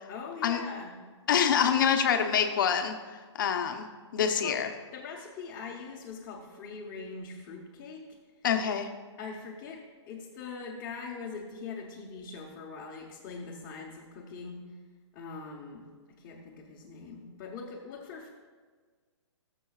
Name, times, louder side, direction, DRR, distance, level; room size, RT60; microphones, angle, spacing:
voice 1, 0.1-0.9 4.2-4.6 4.9-8.1 9.2-14.6 15.1-15.8 16.2-18.3, left 4 dB, 20° left, -5 dB, 0.8 m, -42 dB
voice 2, 1.3-3.0 3.3-3.9 4.1-4.7 8.4-8.9, left 8 dB, 40° left, 6 dB, 0.8 m, -25 dB
20.0 x 6.8 x 2.4 m, 1.5 s
hypercardioid pair, 170°, 16 cm